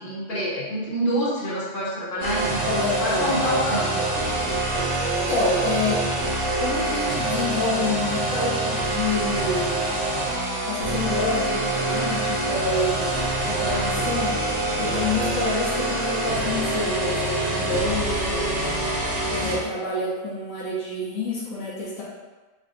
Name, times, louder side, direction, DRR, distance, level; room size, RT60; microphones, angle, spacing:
voice 1, 0.0-4.1, equal, 45° left, -7 dB, 1.0 m, -27 dB
sound 1, 2.2-19.6, right 2 dB, 90° right, 1.3 m, -25 dB
voice 2, 2.7-3.3 5.2-6.0 6.5-10.0 10.7-14.4 14.8-18.5 19.3-22.0, left 3 dB, 85° left, -7 dB, 1.2 m, -28 dB
3.5 x 2.2 x 3.7 m, 1.2 s
omnidirectional pair, 1.3 m